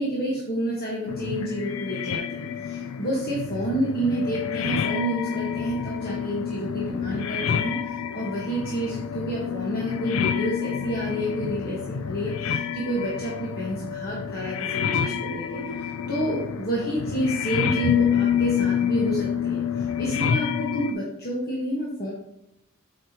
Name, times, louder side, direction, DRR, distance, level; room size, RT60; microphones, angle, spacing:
voice 1, 0.0-15.5 15.8-22.1, right 1 dB, 45° left, -5 dB, 1.3 m, -29 dB
sound 1, 1.1-20.9, left 8 dB, 75° left, 0.4 m, -28 dB
7.7 x 4.9 x 2.9 m, 0.81 s
head